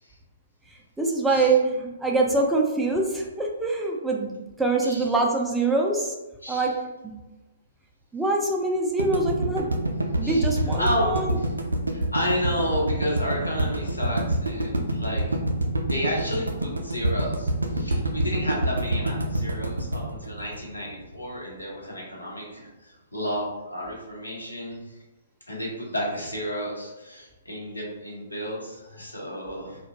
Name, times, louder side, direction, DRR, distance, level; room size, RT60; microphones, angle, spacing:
voice 1, 1.0-6.1 6.5-6.8 7.0-7.1 8.1-9.7 10.2-11.4, right 3 dB, 5° right, -1 dB, 0.3 m, -24 dB
sound 1, 9.0-21.2, right 1 dB, 80° right, 0.4 m, -26 dB
voice 2, 10.2-11.5 11.9-15.4 15.8-24.8 25.5-29.9, equal, 90° left, -3 dB, 0.8 m, -31 dB
2.4 x 2.1 x 2.7 m, 1.1 s
figure-of-eight pair, 120°, 0 cm